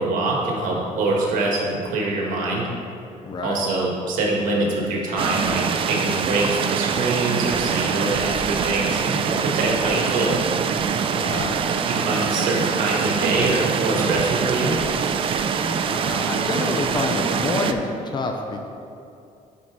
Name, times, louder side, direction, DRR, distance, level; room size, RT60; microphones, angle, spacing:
voice 1, 0.0-2.7 3.4-10.4 11.9-14.8, right 2 dB, 80° right, -2 dB, 1.6 m, -24 dB
voice 2, 3.2-3.6 11.1-11.7 15.6-18.7, left 3 dB, 35° left, 3 dB, 0.6 m, -28 dB
sound 1, 5.2-17.7, right 6 dB, 40° right, 0.4 m, -24 dB
9.4 x 4.4 x 4.8 m, 2.6 s
cardioid pair, 150°, 13 cm